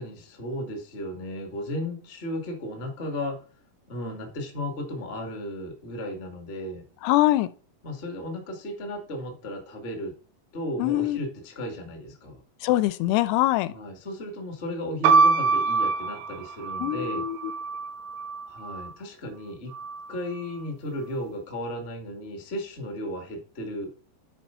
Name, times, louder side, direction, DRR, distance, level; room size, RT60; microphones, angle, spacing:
voice 1, 0.0-3.4 3.9-6.8 7.8-10.1 10.5-12.4 13.7-17.2 18.5-19.7 20.1-23.9, left 1 dB, 60° left, 0.6 m, -35 dB
voice 2, 7.0-7.5 10.8-11.2 12.6-13.7 16.8-17.5, left 16 dB, 85° left, 2.5 m, -23 dB
sound 1, 15.0-18.9 19.7-20.4, right 4 dB, 90° right, 2.8 m, -25 dB
9.8 x 4.3 x 5.5 m
omnidirectional pair, 4.6 m